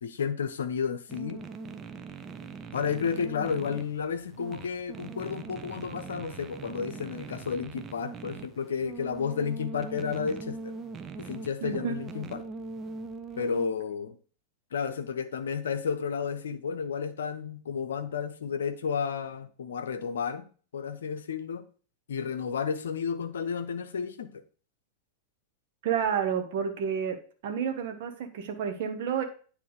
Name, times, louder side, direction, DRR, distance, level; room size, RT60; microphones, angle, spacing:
voice 1, 0.0-1.4 2.7-10.7 11.2-12.4 13.4-14.2 14.7-20.5 20.7-21.6 22.1-24.3, left 6 dB, 65° left, 10 dB, 0.7 m, -32 dB
sound 1, 1.1-13.7, right 4 dB, 25° right, 0.7 m, -41 dB
voice 2, 11.6-12.0 25.8-27.2 27.4-29.2, right 7 dB, 50° right, 5 dB, 1.2 m, -30 dB
9.4 x 3.5 x 4.8 m, 0.41 s
figure-of-eight pair, 90°, 0 cm